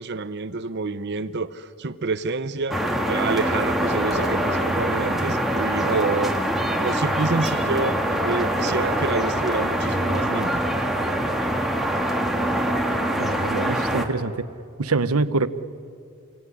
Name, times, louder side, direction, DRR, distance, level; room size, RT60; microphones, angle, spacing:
voice 1, 0.0-10.6, right 3 dB, 50° right, 12 dB, 0.7 m, -28 dB
sound 1, 2.7-14.0, right 1 dB, ahead, 1.8 m, -24 dB
voice 2, 13.2-14.5 14.8-15.5, right 3 dB, 90° right, 13 dB, 1.0 m, -24 dB
29.0 x 18.0 x 9.9 m, 2.6 s
head